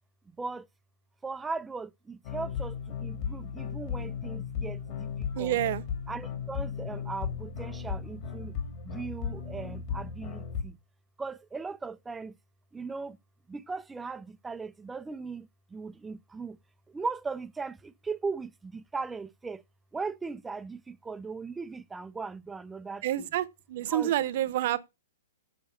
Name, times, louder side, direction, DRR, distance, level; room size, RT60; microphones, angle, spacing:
voice 1, 1.2-5.6 6.1-8.5 8.8-10.8 11.2-12.4 12.7-13.2 13.5-16.6 16.9-19.6 19.9-23.0 23.9-24.1, right 4 dB, 10° right, 0.5 m, -38 dB
sound 1, 2.2-10.6, left 7 dB, 45° left, 2.8 m, -35 dB
voice 2, 5.3-5.8 23.0-24.8, right 13 dB, 50° right, 0.9 m, -28 dB
7.9 x 5.2 x 6.9 m
hypercardioid pair, 130°, 0 cm